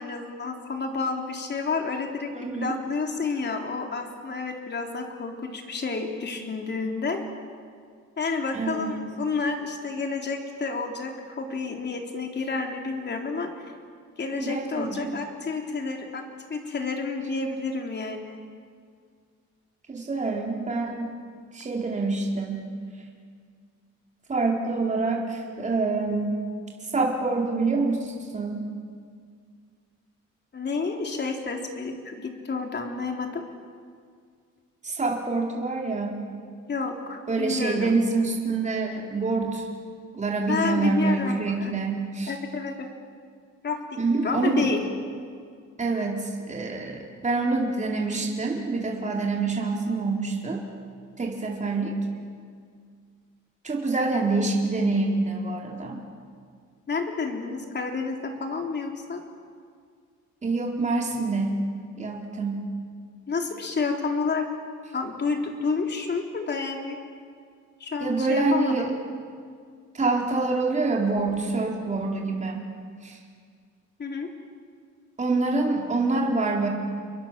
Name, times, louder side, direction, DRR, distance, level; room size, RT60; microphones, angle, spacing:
voice 1, 0.0-7.2 8.2-13.7 14.2-16.2 16.5-18.4 30.5-33.4 36.7-38.0 40.5-41.7 42.3-42.9 43.6-44.8 56.9-59.2 63.3-64.5 64.9-67.0 67.8-68.9 74.0-74.3, left 4 dB, 35° left, 2 dB, 3.7 m, -30 dB
voice 2, 2.3-2.8 8.5-9.0 14.4-15.1 19.9-21.1 21.5-22.7 24.3-26.3 26.8-28.7 34.8-36.2 37.3-39.7 40.1-42.3 44.0-44.7 45.8-50.6 51.2-52.0 53.6-56.0 60.4-61.6 62.0-62.7 68.0-68.9 69.9-72.7 73.0-73.2 75.2-76.7, right 3 dB, 25° right, -1 dB, 4.2 m, -26 dB
30.0 x 22.5 x 7.6 m, 2.1 s
cardioid pair, 125°, 29 cm